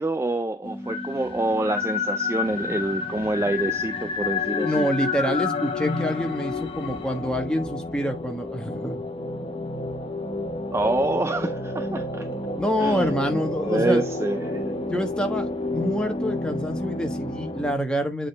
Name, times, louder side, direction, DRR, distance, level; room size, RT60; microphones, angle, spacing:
voice 1, 0.0-4.9 10.7-12.3 12.8-14.7, right 2 dB, 15° right, 0.3 m, -27 dB
sound 1, 0.6-17.7, left 3 dB, 30° left, 1.1 m, -30 dB
voice 2, 4.6-9.0 12.6-14.0 14.9-18.3, equal, 5° left, 1.2 m, -27 dB
8.4 x 3.7 x 3.3 m
head